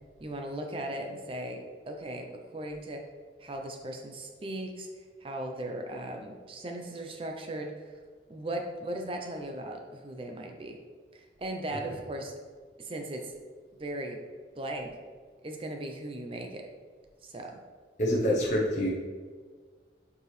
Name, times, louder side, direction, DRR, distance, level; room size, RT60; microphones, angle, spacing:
voice 1, 0.2-3.0 3.4-4.9 5.2-7.9 8.3-10.8 11.1-12.3 12.8-13.3 13.8-14.2 14.6-14.9 15.4-16.7 17.2-17.5, right 1 dB, 30° right, 3 dB, 0.6 m, -37 dB
voice 2, 18.0-18.9, equal, 40° left, -5 dB, 0.9 m, -26 dB
7.4 x 4.7 x 3.2 m, 1.5 s
head